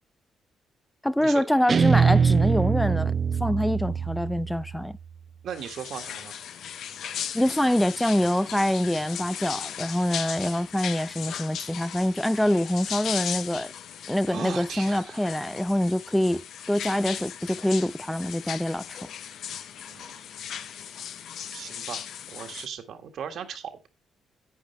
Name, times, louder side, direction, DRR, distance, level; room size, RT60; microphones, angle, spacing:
voice 1, 1.0-3.1 3.4-5.0 7.3-13.7 14.1-19.1, left 1 dB, 5° left, 0.4 m, -25 dB
Guitar, 1.7-4.9, right 6 dB, 50° right, 0.5 m, -23 dB
voice 2, 5.4-6.4 14.3-15.4 19.9-20.2 21.5-23.9, right 8 dB, 70° right, 1.8 m, -38 dB
sound 1, 5.5-22.7, left 9 dB, 70° left, 0.7 m, -37 dB
10.0 x 8.7 x 3.3 m
supercardioid pair, 60°, 0 cm